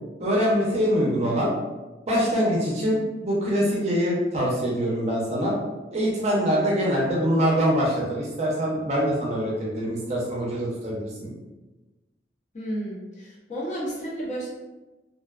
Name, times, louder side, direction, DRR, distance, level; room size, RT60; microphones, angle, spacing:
voice 1, 0.2-1.5 2.1-5.5 5.9-11.3, equal, 35° right, -4 dB, 0.5 m, -24 dB
voice 2, 12.5-14.5, right 1 dB, 40° left, -5 dB, 0.7 m, -32 dB
2.5 x 2.2 x 2.3 m, 1.1 s
head